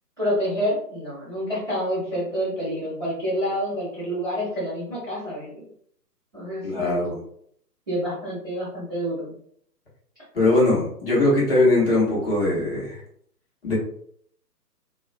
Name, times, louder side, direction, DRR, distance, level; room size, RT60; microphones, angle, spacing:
voice 1, 0.2-5.6 6.3-7.0 7.9-9.3, equal, 15° right, -15 dB, 0.7 m, -28 dB
voice 2, 6.6-7.2 10.3-13.0 13.6-13.7, left 2 dB, 35° left, -6 dB, 0.8 m, -21 dB
2.3 x 2.1 x 2.5 m, 0.64 s
figure-of-eight pair, 135°, 49 cm